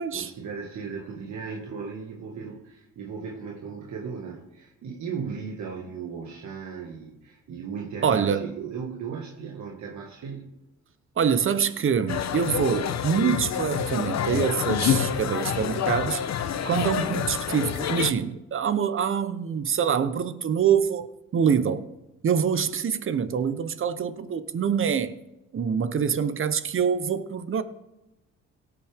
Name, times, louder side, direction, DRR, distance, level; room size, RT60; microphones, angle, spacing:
voice 1, 0.0-10.5, right 6 dB, 70° right, 1.9 m, -37 dB
voice 2, 8.0-8.5 11.2-16.2 16.6-21.1 21.3-21.9 22.2-25.1 25.5-27.6, right 7 dB, 45° right, 0.9 m, -25 dB
sound 1, 12.1-18.1, left 8 dB, 60° left, 1.0 m, -27 dB
17.5 x 8.5 x 3.6 m
cardioid pair, 90°, 30 cm